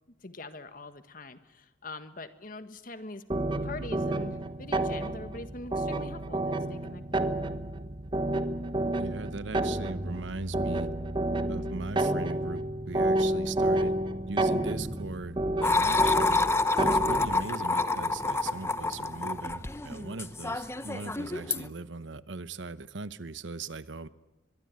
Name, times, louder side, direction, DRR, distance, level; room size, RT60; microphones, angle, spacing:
voice 1, 0.2-3.2 3.6-7.2, left 2 dB, 45° left, 10 dB, 1.6 m, -43 dB
sound 1, 3.3-17.4, right 1 dB, 25° right, 1.2 m, -30 dB
voice 2, 8.9-10.9 11.5-13.9 14.3-16.4 16.8-24.1, right 3 dB, 75° right, 15 dB, 1.0 m, -39 dB
sound 2, 15.6-21.7, left 3 dB, 15° left, 0.9 m, -28 dB
23.0 x 23.0 x 9.7 m, 1.0 s
head